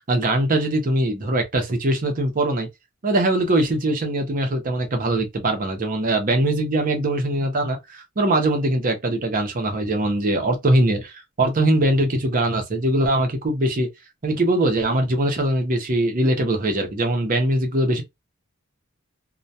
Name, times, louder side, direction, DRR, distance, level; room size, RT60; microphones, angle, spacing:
voice 1, 0.0-2.7 3.0-13.9 14.2-18.0, right 1 dB, 40° right, 0.6 m, -22 dB
2.1 x 2.1 x 2.7 m
head